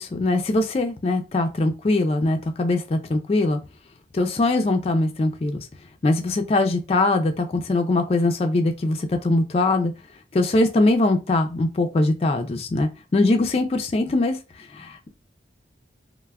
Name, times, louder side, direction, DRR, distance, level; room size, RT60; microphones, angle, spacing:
voice 1, 0.0-3.6 4.1-5.7 6.0-9.9 10.3-14.4 14.7-15.1, left 2 dB, 35° left, 0.3 m, -22 dB
3.2 x 2.0 x 2.3 m
head